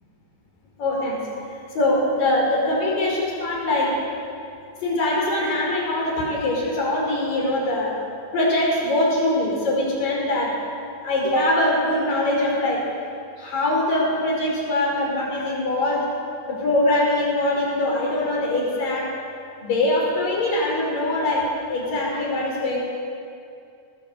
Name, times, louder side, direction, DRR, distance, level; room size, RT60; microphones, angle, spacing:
voice 1, 0.8-1.2 1.8-4.0 4.8-7.9 8.3-10.6 11.0-12.9 13.4-16.1 16.5-19.1 19.6-22.8, left 1 dB, 85° left, -2 dB, 7.0 m, -22 dB
21.0 x 19.5 x 8.2 m, 2.5 s
omnidirectional pair, 3.8 m